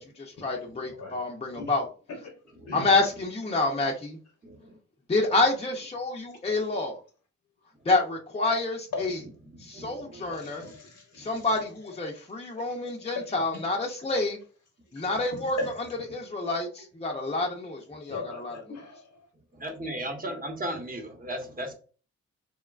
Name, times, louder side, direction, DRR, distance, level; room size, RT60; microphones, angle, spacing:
voice 1, 0.0-1.8 2.7-4.2 5.1-7.0 7.9-9.2 9.6-10.6 11.2-14.4 14.9-15.6 16.1-18.6, left 2 dB, 20° left, 0.5 m, -28 dB
voice 2, 0.9-1.2 1.5-1.7 2.2-2.4 2.6-2.9 8.9-9.1 10.2-11.5 12.0-12.8 13.1-13.6 14.9-15.1 15.6-15.9 16.8-16.9 18.1-19.2, left 4 dB, 70° left, 0.7 m, -39 dB
voice 3, 4.4-4.8 9.5-10.7 11.2-11.3 19.6-21.7, right 1 dB, 30° right, 0.9 m, -37 dB
3.0 x 2.2 x 2.3 m
cardioid pair, 65°, 29 cm